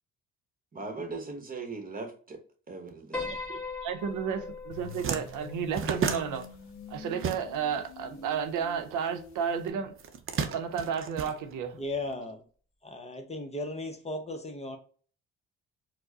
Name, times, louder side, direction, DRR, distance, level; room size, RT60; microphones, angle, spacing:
voice 1, 0.7-2.4 2.7-3.3, right 3 dB, 30° right, 1.0 m, -39 dB
Piano, 3.1-7.5, left 4 dB, 5° left, 1.3 m, -41 dB
voice 2, 3.3-6.4 6.9-9.9 10.4-11.8, right 7 dB, 85° right, 0.6 m, -32 dB
sound 1, 4.3-4.4 4.7-7.9 8.1-9.3 9.9-12.0, right 6 dB, 45° right, 0.6 m, -34 dB
sound 2, 4.7-9.7, left 4 dB, 65° left, 0.8 m, -45 dB
voice 3, 11.7-12.4 12.8-14.8, left 2 dB, 20° left, 0.6 m, -36 dB
4.4 x 2.1 x 2.7 m
cardioid pair, 90°, 30 cm